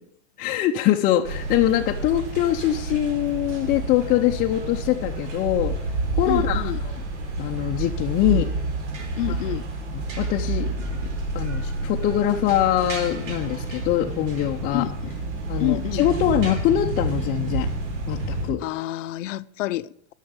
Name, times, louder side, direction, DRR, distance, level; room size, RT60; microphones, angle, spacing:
voice 1, 0.4-5.8 6.2-7.0 7.4-8.5 9.3-9.6 9.9-10.7 11.3-14.9 15.5-17.7 18.1-18.6, left 12 dB, 25° left, 0.6 m, -23 dB
sound 1, 1.2-18.5, right 2 dB, 75° right, 4.3 m, -29 dB
voice 2, 6.3-6.8 8.3-8.5 9.2-9.7 14.7-15.1 15.6-16.1 18.6-20.1, left 16 dB, 85° left, 0.7 m, -28 dB
12.5 x 6.4 x 9.6 m
supercardioid pair, 160°, 36 cm